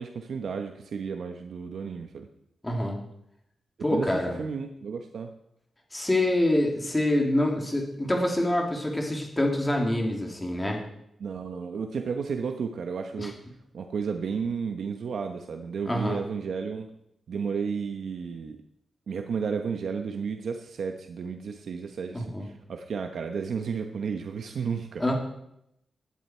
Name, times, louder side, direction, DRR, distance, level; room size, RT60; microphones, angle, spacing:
voice 1, 0.0-2.3 3.9-4.1 4.4-5.3 11.2-13.4 13.7-16.9 17.3-18.6 19.1-25.0, right 6 dB, 70° right, 5 dB, 1.0 m, -32 dB
voice 2, 2.6-3.0 3.8-4.4 5.9-10.8 13.2-13.3 15.9-16.2 22.1-22.5 25.0-25.1, left 1 dB, 15° left, 1 dB, 2.8 m, -26 dB
17.0 x 11.5 x 4.5 m, 0.79 s
wide cardioid pair, 150°, 0 cm